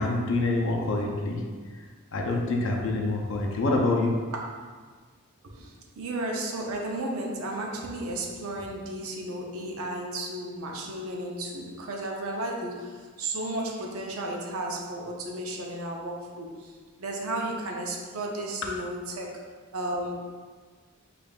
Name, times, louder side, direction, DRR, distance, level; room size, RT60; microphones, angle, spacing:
voice 1, 0.0-1.4 2.1-4.2, left 2 dB, 60° left, 0 dB, 0.5 m, -26 dB
voice 2, 4.3-4.7 6.0-16.7 17.0-19.4 19.7-20.2, right 1 dB, 80° right, 0 dB, 0.6 m, -33 dB
5.1 x 2.4 x 2.3 m, 1.5 s
head